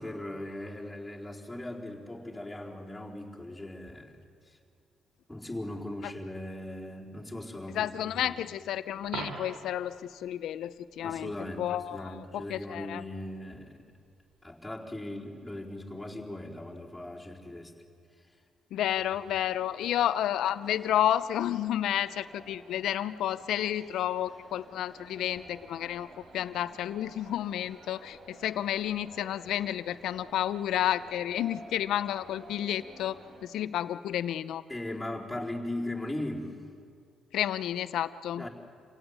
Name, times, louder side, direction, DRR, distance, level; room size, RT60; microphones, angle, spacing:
voice 1, 0.0-4.2 5.3-8.4 11.0-11.7 11.9-13.8 14.4-17.7 34.7-36.6 38.3-38.5, left 1 dB, 5° left, -3 dB, 4.3 m, -38 dB
voice 2, 7.7-11.3 11.6-13.0 18.7-26.1 26.3-34.6 37.3-38.5, left 11 dB, 80° left, 14 dB, 0.8 m, -31 dB
Coin (dropping), 9.0-9.9 16.0-16.1, right 4 dB, 75° right, 3.0 m, -39 dB
sound 1, 19.0-33.5, right 2 dB, 55° right, 4.1 m, -52 dB
27.0 x 17.0 x 9.5 m, 2.3 s
cardioid pair, 90°, 0 cm